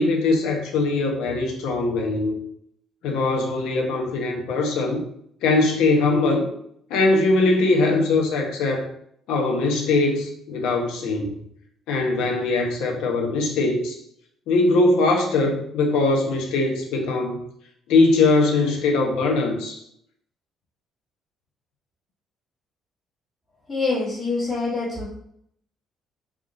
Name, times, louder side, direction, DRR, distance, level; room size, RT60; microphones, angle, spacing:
voice 1, 0.0-2.4 3.0-5.0 5.4-6.5 6.9-8.9 9.3-11.4 11.9-14.0 14.5-17.4 17.9-19.8, left 3 dB, 85° left, 2 dB, 0.8 m, -21 dB
voice 2, 23.7-25.1, left 3 dB, 20° left, -9 dB, 1.4 m, -25 dB
3.5 x 2.4 x 3.7 m, 0.70 s
cardioid pair, 120°, 0 cm